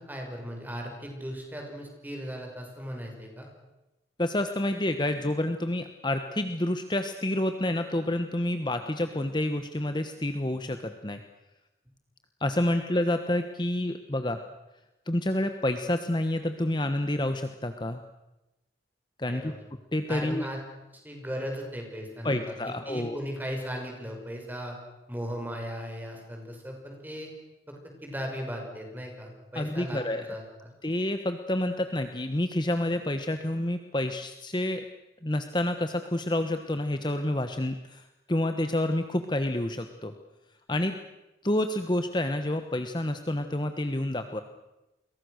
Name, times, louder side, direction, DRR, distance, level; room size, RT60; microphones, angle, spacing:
voice 1, 0.1-3.5 19.3-19.6 20.1-20.6 20.9-22.5 22.9-24.8 25.1-27.3 27.7-30.0 30.3-30.7, equal, 10° right, 1 dB, 6.0 m, -37 dB
voice 2, 4.2-11.2 12.4-14.4 15.1-18.0 19.2-19.5 19.9-20.5 22.2-23.2 29.5-30.3 30.8-34.8 35.2-40.1 40.7-40.9 41.4-44.4, left 1 dB, 25° left, 8 dB, 1.2 m, -28 dB
30.0 x 23.0 x 6.6 m, 0.98 s
head